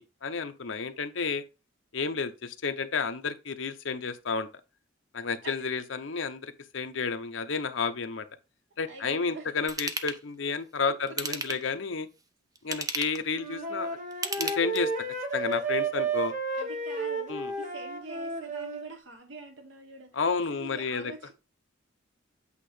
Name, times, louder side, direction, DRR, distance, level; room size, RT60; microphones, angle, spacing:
voice 1, 0.2-1.4 1.9-4.5 5.1-8.2 8.8-12.1 12.6-14.0 14.4-14.9 15.3-16.3 17.3-17.5 20.2-21.3, left 5 dB, 70° left, 0.8 m, -31 dB
voice 2, 8.9-9.5 10.9-11.2 11.5-11.6 12.6-13.0 16.5-20.2 20.5-21.3, right 2 dB, 65° right, 1.0 m, -45 dB
Ratchet pawl / Tools, 9.7-10.2 11.1-11.8 12.6-13.3 14.1-15.0 15.5-15.6, right 3 dB, 20° right, 0.6 m, -33 dB
Wind instrument woodwind instrument, 13.3-18.9, right 3 dB, 40° right, 1.1 m, -32 dB
8.3 x 2.8 x 5.0 m
head